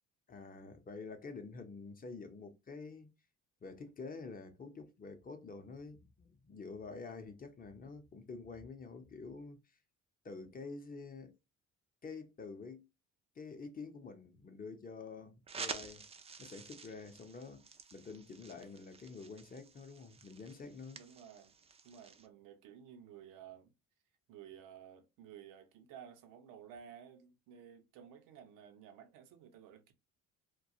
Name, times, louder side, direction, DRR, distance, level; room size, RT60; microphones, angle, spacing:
voice 1, 0.3-3.1 3.6-9.6 10.2-11.3 12.0-12.9 13.4-16.0 16.4-17.6 17.9-21.0, left 4 dB, 25° left, 0.6 m, -48 dB
sound 1, 15.5-22.3, right 5 dB, 20° right, 0.3 m, -49 dB
voice 2, 20.9-21.5 21.8-23.7 24.3-29.9, right 8 dB, 80° right, 0.7 m, -54 dB
2.3 x 2.3 x 2.7 m
cardioid pair, 90°, 32 cm